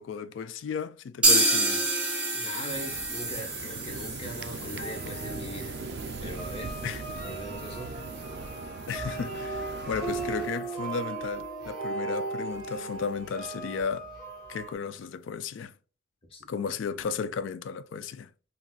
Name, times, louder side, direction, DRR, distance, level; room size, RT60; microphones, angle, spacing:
voice 1, 0.0-1.9 6.8-7.0 8.9-14.1 14.5-15.7 16.5-18.3, left 6 dB, 75° left, 0.3 m, -34 dB
sound 1, 1.2-9.0 9.3-9.4 9.7-9.8 10.2-10.3, right 2 dB, 5° right, 0.8 m, -30 dB
voice 2, 2.3-5.8 6.2-6.8 7.2-8.0 16.3-16.7, equal, 30° left, 0.8 m, -40 dB
sound 2, 2.7-10.5, right 4 dB, 55° right, 0.3 m, -40 dB
sound 3, 4.8-14.7, right 3 dB, 25° right, 1.4 m, -37 dB
3.8 x 2.5 x 2.3 m
head